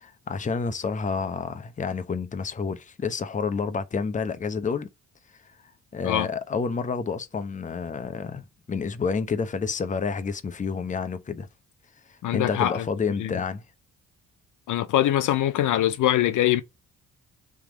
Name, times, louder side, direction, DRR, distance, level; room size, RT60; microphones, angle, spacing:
voice 1, 0.0-4.9 5.9-11.5 12.1-13.6, left 5 dB, 25° left, 0.6 m, -29 dB
voice 2, 12.2-12.8 13.2-13.3 14.7-16.6, left 13 dB, 70° left, 0.6 m, -23 dB
3.5 x 3.0 x 4.8 m
cardioid pair, 90°, 32 cm